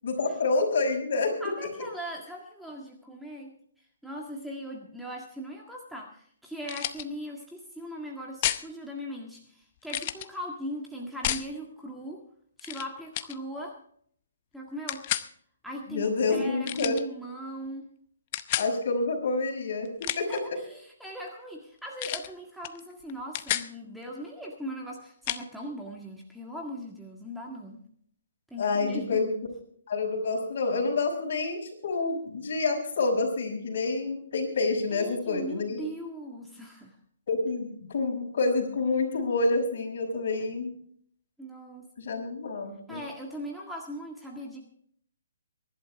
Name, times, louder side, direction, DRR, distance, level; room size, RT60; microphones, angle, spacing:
voice 1, 0.0-1.3 15.9-17.0 18.6-20.3 28.6-29.3 29.9-35.9 37.3-40.7 42.0-43.0, left 3 dB, 55° left, 1 dB, 5.9 m, -28 dB
voice 2, 1.4-3.6 4.0-12.2 12.6-13.8 14.5-15.1 15.6-17.8 20.1-27.8 28.5-29.2 34.9-37.0 41.4-41.9 42.9-44.6, equal, ahead, -1 dB, 1.7 m, -39 dB
sound 1, 6.6-7.0 8.4-8.7 9.9-10.3 11.2-11.5 12.6-12.9 13.1-13.4 14.9-15.3 16.6-17.0 18.3-18.7 19.8-20.4 22.0-22.3 22.6-22.8 23.1-23.7 25.3-25.4, left 13 dB, 35° left, 0.8 m, -31 dB
24.0 x 11.5 x 3.4 m, 0.62 s
hypercardioid pair, 150°, 0 cm